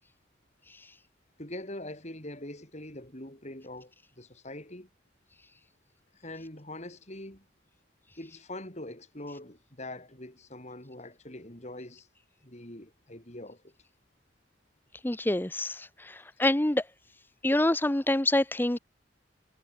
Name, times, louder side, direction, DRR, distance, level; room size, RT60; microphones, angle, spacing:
voice 1, 1.4-4.9 6.1-7.5 8.2-12.1 12.4-13.7 16.4-16.5, left 1 dB, 35° left, 4.9 m, -43 dB
voice 2, 15.0-16.8 17.4-18.8, left 1 dB, 10° left, 0.7 m, -26 dB
head